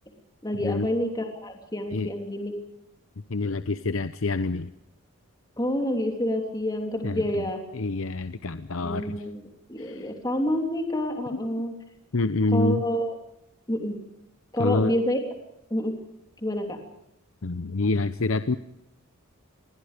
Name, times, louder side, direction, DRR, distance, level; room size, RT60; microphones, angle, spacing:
voice 1, 0.4-2.5 5.6-7.6 8.8-9.4 9.7-11.7 12.5-13.1 13.7-14.0 14.5-15.2 15.7-16.0 16.4-16.8, equal, 20° left, 3 dB, 3.2 m, -28 dB
voice 2, 3.3-4.7 7.0-7.5 7.7-9.3 9.8-10.1 11.3-11.4 12.1-12.8 14.6-14.9 17.4-18.6, left 3 dB, 70° left, 11 dB, 0.8 m, -27 dB
27.5 x 21.0 x 5.2 m, 0.81 s
head